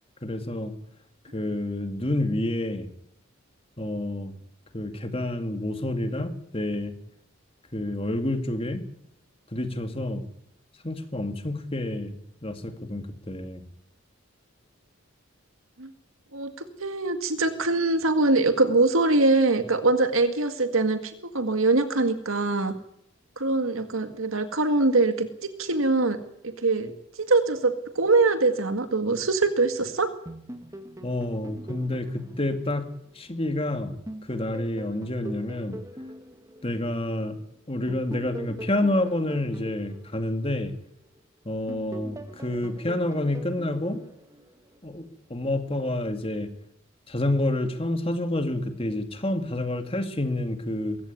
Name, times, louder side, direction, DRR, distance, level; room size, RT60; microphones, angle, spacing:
voice 1, 0.2-0.7 1.3-2.9 3.8-4.3 4.7-6.9 7.7-8.9 9.5-10.2 10.8-12.2 12.4-13.6 31.0-32.9 33.2-33.9 34.3-35.8 36.6-37.4 37.7-40.7 41.5-44.0 44.8-46.5 47.1-51.0, left 1 dB, 25° left, 8 dB, 2.2 m, -28 dB
voice 2, 16.8-22.8 23.4-26.2 26.4-26.9 27.2-30.1, right 3 dB, 85° right, 9 dB, 2.0 m, -23 dB
sound 1, 30.3-33.6 34.1-37.3 37.9-41.2 41.7-44.9, equal, 15° right, 2.1 m, -43 dB
22.5 x 16.0 x 9.7 m, 0.76 s
head